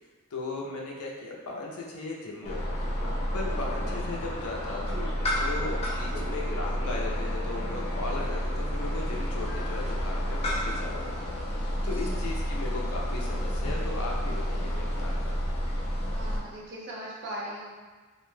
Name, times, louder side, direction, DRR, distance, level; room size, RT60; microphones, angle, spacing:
voice 1, 0.3-2.9 3.3-5.1 5.4-15.3, left 3 dB, 90° left, -2 dB, 0.5 m, -37 dB
sound 1, 2.4-16.4, equal, 30° left, 0.4 m, -30 dB
Telephone, 2.4-2.5 2.9-4.3 4.9-7.2 7.5-10.2, equal, 15° right, 0.8 m, -44 dB
voice 2, 11.9-12.3 16.1-17.7, right 1 dB, 50° right, -4 dB, 0.6 m, -40 dB
2.6 x 2.1 x 3.1 m, 1.4 s
head